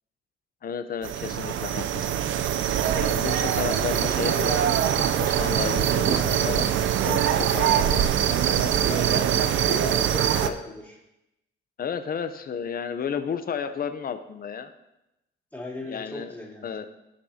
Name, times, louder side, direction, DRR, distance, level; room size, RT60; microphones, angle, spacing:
voice 1, 0.6-2.1 2.9-6.7 7.0-8.0 9.1-9.8 10.4-10.5 11.8-14.7 15.8-16.3 16.6-16.9, left 7 dB, 50° left, 9 dB, 0.8 m, -33 dB
sound 1, 1.0-10.5, right 9 dB, 75° right, 0.6 m, -23 dB
voice 2, 3.9-4.4 6.3-6.5 7.4-7.9 8.7-11.0 15.5-16.7, left 1 dB, 10° left, -6 dB, 3.2 m, -38 dB
16.0 x 5.3 x 2.9 m, 0.91 s
cardioid pair, 90°, 20 cm